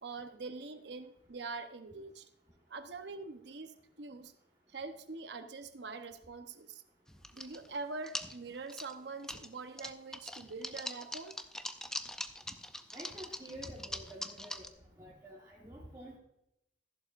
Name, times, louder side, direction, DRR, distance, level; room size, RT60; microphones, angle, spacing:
voice 1, 0.0-2.3 2.7-4.3 4.7-6.8 7.3-11.3, right 3 dB, 60° right, 8 dB, 0.8 m, -44 dB
sound 1, 7.1-7.8 8.0-9.5 9.8-14.7, left 1 dB, 5° left, 0.4 m, -42 dB
voice 2, 12.9-14.6 15.0-16.2, equal, 20° right, -5 dB, 1.2 m, -48 dB
14.0 x 11.0 x 2.5 m, 0.84 s
head